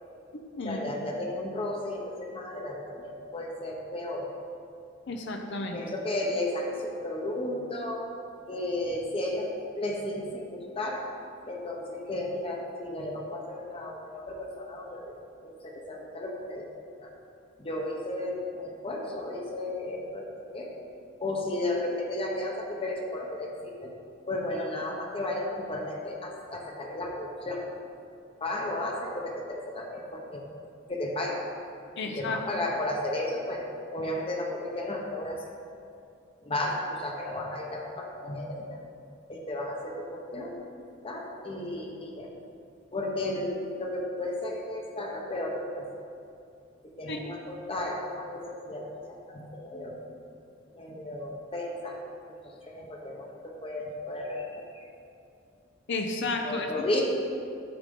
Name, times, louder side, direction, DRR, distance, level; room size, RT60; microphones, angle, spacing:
voice 1, 0.6-4.3 5.7-8.0 8.5-11.0 11.5-15.2 15.4-16.7 17.0-17.1 17.6-20.9 21.2-23.9 24.3-27.7 28.4-30.4 30.9-31.4 32.0-33.7 33.9-35.4 36.4-38.8 39.3-40.6 41.0-42.3 42.9-45.9 46.8-50.0 50.7-52.0 52.4-54.8 56.4-57.0, left 1 dB, 30° left, 0 dB, 0.9 m, -34 dB
voice 2, 5.1-5.8 32.0-32.4 47.1-47.2 55.9-56.7, left 3 dB, 65° left, 3 dB, 0.6 m, -32 dB
8.7 x 6.5 x 3.7 m, 2.5 s
head